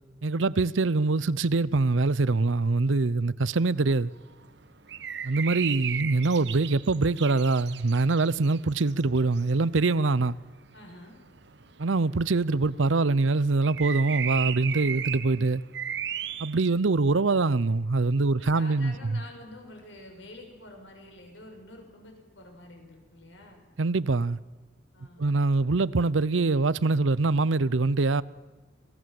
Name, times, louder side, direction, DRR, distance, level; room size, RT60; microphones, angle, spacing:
voice 1, 0.2-4.1 5.2-10.4 11.8-15.6 16.4-19.2 23.8-24.4 25.2-28.2, right 3 dB, 90° right, 0.7 m, -24 dB
sound 1, 3.9-9.6 10.0-10.1 10.4-11.0 11.3-12.8 13.1-16.7, right 9 dB, 65° right, 1.0 m, -35 dB
voice 2, 10.7-11.2 18.4-23.6 24.9-25.4, left 1 dB, 80° left, 6.6 m, -47 dB
27.0 x 18.5 x 7.8 m
head